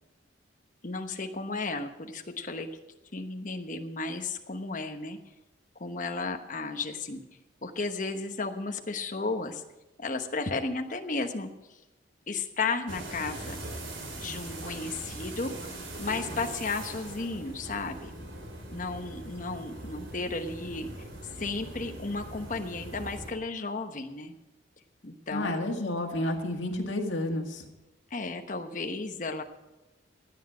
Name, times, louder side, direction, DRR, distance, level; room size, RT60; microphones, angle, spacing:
voice 1, 0.8-2.7 3.1-5.2 5.8-7.2 7.6-9.6 10.0-11.8 12.3-13.6 14.2-18.1 18.7-20.9 21.4-24.4 25.0-25.6 28.1-29.4, left 3 dB, 45° left, 6 dB, 1.1 m, -34 dB
sound 1, 12.9-23.3, right 1 dB, 85° right, 3.3 m, -41 dB
voice 2, 25.3-27.6, left 1 dB, 80° left, 2 dB, 2.0 m, -30 dB
16.0 x 9.8 x 5.0 m, 1.0 s
head